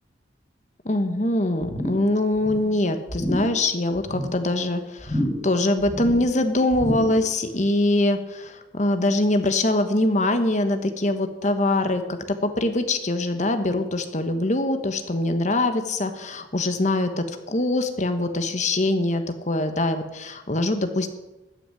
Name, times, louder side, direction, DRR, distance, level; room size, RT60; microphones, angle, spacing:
voice 1, 0.8-21.1, left 2 dB, 40° left, 8 dB, 1.2 m, -23 dB
sound 1, 1.6-2.1 2.4-2.7 3.1-3.6 4.0-4.4 5.0-5.5 5.8-6.3 6.7-7.3 7.6-7.7, equal, 5° left, 2.9 m, -29 dB
13.0 x 6.3 x 9.8 m, 1.0 s
head